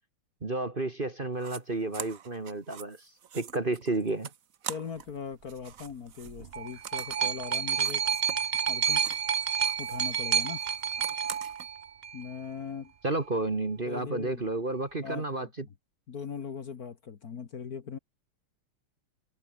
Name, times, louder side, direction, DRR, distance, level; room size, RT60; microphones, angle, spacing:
voice 1, 0.4-4.3 13.0-15.7, right 2 dB, 25° right, 1.6 m, -31 dB
sound 1, 1.4-1.6 1.9-5.2 5.4-9.3 9.6-11.7, right 9 dB, 50° right, 1.2 m, -44 dB
voice 2, 4.7-8.2 8.7-9.1 9.8-10.6 12.1-12.9 13.9-14.5 15.0-15.5 16.1-18.0, left 6 dB, 45° left, 1.7 m, -40 dB
sound 2, 6.3-12.3 13.2-13.3, right 8 dB, 70° right, 0.5 m, -29 dB
omnidirectional pair, 2.4 m